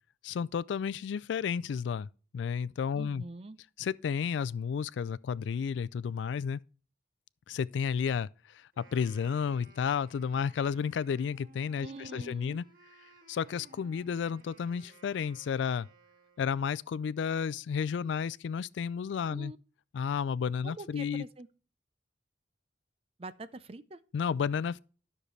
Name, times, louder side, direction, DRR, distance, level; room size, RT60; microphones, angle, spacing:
voice 1, 0.2-2.1 2.3-3.2 3.8-6.6 7.5-12.6 13.3-15.9 16.4-19.5 19.9-21.2 24.1-24.8, left 6 dB, 75° left, 0.3 m, -32 dB
voice 2, 2.9-3.6 11.8-12.6 19.3-19.6 20.6-21.5 23.2-24.0, right 2 dB, 30° right, 0.5 m, -44 dB
Wind instrument woodwind instrument, 8.7-16.7, right 3 dB, 45° right, 1.7 m, -59 dB
12.5 x 6.6 x 3.2 m
head